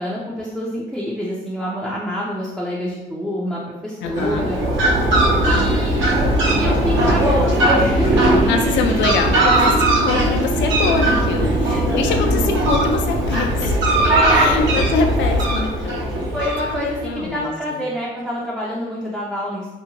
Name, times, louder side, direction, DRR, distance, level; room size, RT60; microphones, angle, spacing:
voice 1, 0.0-4.6 5.4-6.1 6.6-8.4 9.4-9.7 11.4-12.4 14.0-14.7 16.3-19.7, equal, ahead, -6 dB, 0.4 m, -26 dB
voice 2, 4.0-4.5 8.5-13.8 14.3-16.1 16.8-17.8, left 4 dB, 65° left, 4 dB, 0.4 m, -24 dB
Fowl, 4.1-17.1, right 1 dB, 70° right, 0.9 m, -18 dB
2.6 x 2.1 x 2.8 m, 1.1 s
cardioid pair, 90°, 20 cm